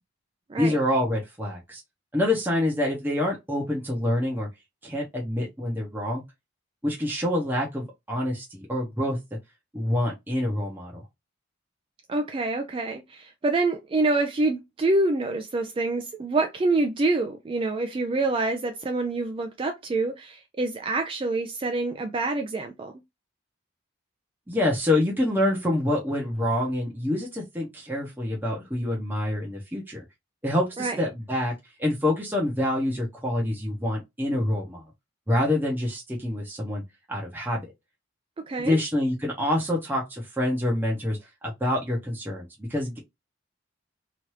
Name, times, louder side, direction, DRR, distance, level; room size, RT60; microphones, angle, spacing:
voice 1, 0.6-1.8 2.1-4.5 4.8-6.2 6.8-9.2 9.7-11.0 24.5-30.0 30.4-31.5 31.8-34.8 35.3-36.8 37.1-37.7 38.6-43.0, left 1 dB, 10° right, 0.7 m, -26 dB
voice 2, 12.1-22.9 30.8-31.0 38.4-38.8, right 2 dB, 25° right, 0.3 m, -26 dB
3.0 x 2.5 x 3.0 m
head